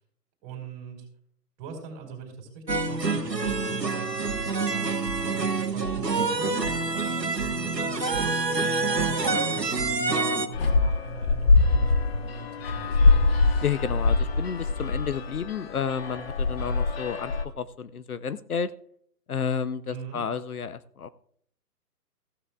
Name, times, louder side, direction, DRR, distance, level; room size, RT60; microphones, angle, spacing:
voice 1, 0.4-1.1 1.6-4.1 4.7-13.2 19.8-20.2, right 5 dB, 25° right, 1 dB, 4.3 m, -41 dB
sound 1, 2.7-10.5, right 3 dB, 90° right, 1.5 m, -27 dB
sound 2, 10.5-17.4, left 3 dB, 40° left, 1.2 m, -23 dB
voice 2, 13.6-18.7 19.3-21.1, left 7 dB, 65° left, 14 dB, 0.8 m, -31 dB
16.0 x 13.0 x 2.4 m, 0.62 s
figure-of-eight pair, 135°, 48 cm